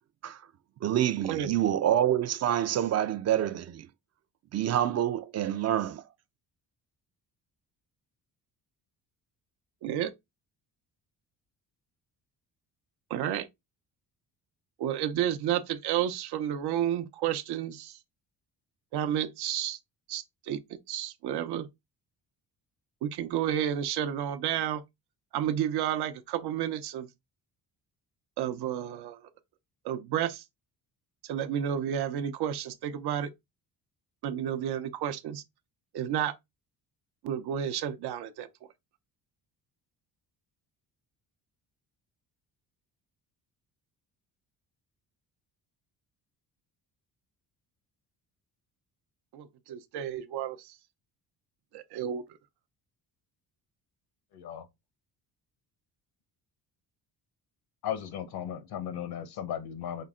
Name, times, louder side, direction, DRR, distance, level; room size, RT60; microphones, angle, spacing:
voice 1, 0.8-3.9 4.5-6.0, right 11 dB, 45° right, 0.4 m, -27 dB
voice 2, 13.1-13.5 14.8-18.0 18.9-19.8 20.1-20.6 20.9-21.7 23.0-24.8 25.3-27.1 28.4-29.2 29.8-30.4 31.2-33.3 34.2-35.4 35.9-36.3 37.2-38.5 49.3-50.7 51.7-52.2, right 10 dB, 85° right, 0.7 m, -31 dB
voice 3, 54.3-54.6 57.8-60.0, left 9 dB, 75° left, 1.0 m, -36 dB
5.4 x 2.1 x 3.6 m
cardioid pair, 130°, 38 cm